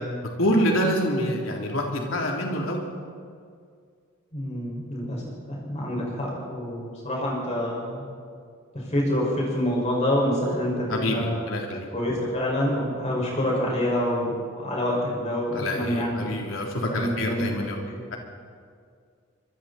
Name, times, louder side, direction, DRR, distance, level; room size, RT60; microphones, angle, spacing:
voice 1, 0.4-2.8 10.9-11.9 15.5-17.7, equal, 85° left, 0 dB, 3.5 m, -26 dB
voice 2, 4.3-5.2 5.5-8.0 8.9-11.5 11.9-16.4 16.9-17.5 17.9-18.0, left 1 dB, 35° left, -3 dB, 6.0 m, -27 dB
25.5 x 24.0 x 4.4 m, 2.1 s
head